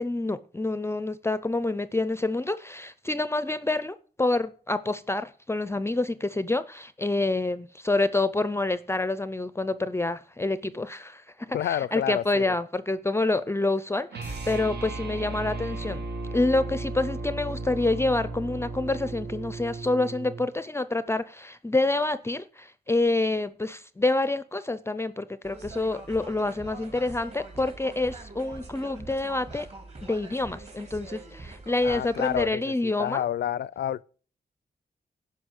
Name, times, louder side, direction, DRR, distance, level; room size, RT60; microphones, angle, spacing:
voice 1, 0.0-16.1 16.3-29.7 30.0-33.2, left 2 dB, 15° left, 0.4 m, -27 dB
voice 2, 11.5-12.4 31.8-34.0, left 10 dB, 85° left, 0.4 m, -29 dB
sound 1, 14.1-20.5, right 3 dB, 90° right, 2.0 m, -35 dB
sound 2, 25.4-32.5, right 3 dB, 40° right, 3.0 m, -44 dB
12.0 x 5.4 x 7.9 m
wide cardioid pair, 155°, 17 cm